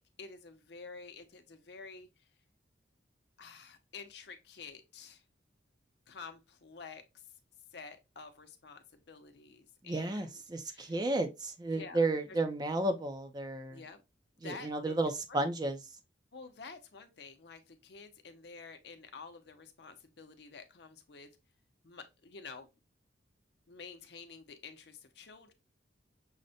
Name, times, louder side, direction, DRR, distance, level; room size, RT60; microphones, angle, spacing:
voice 1, 0.0-2.1 3.4-5.2 6.1-7.0 7.7-11.0 11.7-12.0 12.3-12.4 13.7-14.0 14.4-15.0 15.3-15.4 16.3-21.3 21.8-22.7 23.7-25.5, left 4 dB, 60° left, 0.6 m, -50 dB
voice 2, 9.8-13.8 14.4-15.8, right 2 dB, 20° right, 0.4 m, -33 dB
6.3 x 2.1 x 2.7 m
head